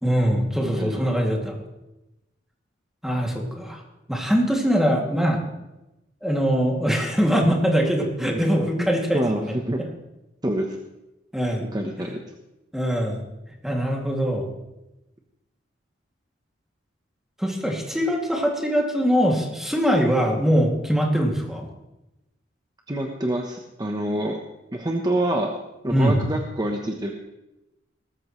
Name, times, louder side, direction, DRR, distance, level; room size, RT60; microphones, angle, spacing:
voice 1, 0.0-1.5 3.0-3.8 4.1-5.4 6.2-9.5 11.3-11.7 12.7-13.2 13.6-14.5 17.4-21.7 25.9-26.2, equal, ahead, -1 dB, 2.5 m, -22 dB
voice 2, 8.8-9.4 9.7-9.8 10.4-10.8 11.7-12.2 22.9-24.4 24.7-25.5 25.8-27.1, right 1 dB, 20° right, 2 dB, 1.0 m, -26 dB
19.5 x 13.0 x 3.2 m, 0.96 s
head